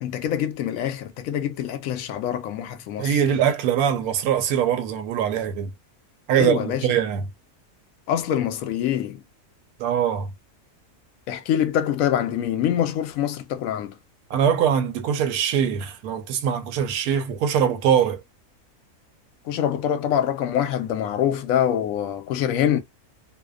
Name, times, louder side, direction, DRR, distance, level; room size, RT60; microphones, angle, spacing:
voice 1, 0.0-3.2 6.3-6.9 8.1-9.2 11.3-14.0 19.5-22.8, left 10 dB, 70° left, 0.9 m, -25 dB
voice 2, 3.0-5.7 6.3-7.2 9.8-10.3 14.3-18.2, right 8 dB, 75° right, 1.0 m, -22 dB
2.6 x 2.1 x 2.4 m
omnidirectional pair, 1.6 m